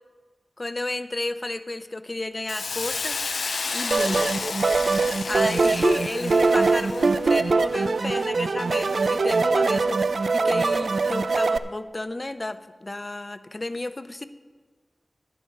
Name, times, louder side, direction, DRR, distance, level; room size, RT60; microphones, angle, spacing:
voice 1, 0.6-3.2 3.7-4.3 5.3-10.0 10.3-14.3, left 2 dB, 35° left, 12 dB, 0.5 m, -32 dB
Hiss, 2.5-7.2, left 4 dB, 90° left, 0.3 m, -31 dB
sound 1, 3.9-11.6, right 4 dB, 80° right, 0.3 m, -22 dB
11.0 x 9.8 x 5.2 m, 1.5 s
wide cardioid pair, 70°, 0 cm